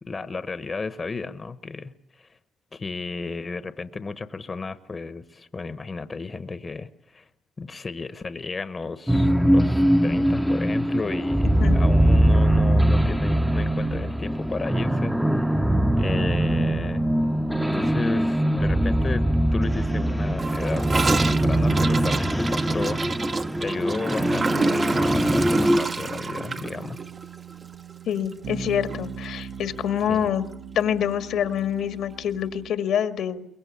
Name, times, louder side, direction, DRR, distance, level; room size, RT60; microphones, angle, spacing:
voice 1, 0.0-2.4 2.7-7.3 7.6-15.5 16.0-17.1 17.6-19.2 19.5-23.3 23.6-27.0 30.1-30.3, left 4 dB, 30° left, 11 dB, 1.0 m, -33 dB
sound 1, 9.1-25.8, right 1 dB, ahead, 0.8 m, -22 dB
voice 2, 11.4-11.8 28.1-30.5 30.8-33.4, left 9 dB, 80° left, 7 dB, 1.8 m, -26 dB
sound 2, 15.7-32.7, right 6 dB, 70° right, 1.3 m, -39 dB
Gurgling / Toilet flush, 20.4-28.7 28.9-29.1 29.3-29.8 30.1-30.2 30.4-30.5 31.5-31.6, right 4 dB, 35° right, 0.9 m, -29 dB
23.0 x 21.5 x 8.4 m, 0.79 s
cardioid pair, 90°, 0 cm